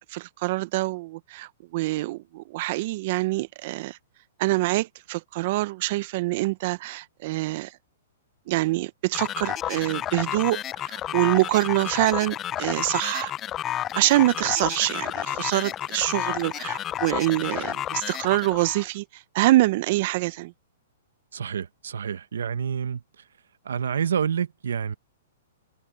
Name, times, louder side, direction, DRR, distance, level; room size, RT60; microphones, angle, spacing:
voice 1, 0.1-4.0 4.4-7.8 8.5-13.3 14.0-20.5, right 18 dB, 50° right, 0.6 m, -25 dB
sound 1, 9.1-18.9, left 12 dB, 25° left, 0.3 m, -31 dB
voice 2, 21.3-23.0 23.6-25.0, right 7 dB, 85° right, 1.1 m, -28 dB
hypercardioid pair, 140°, 0 cm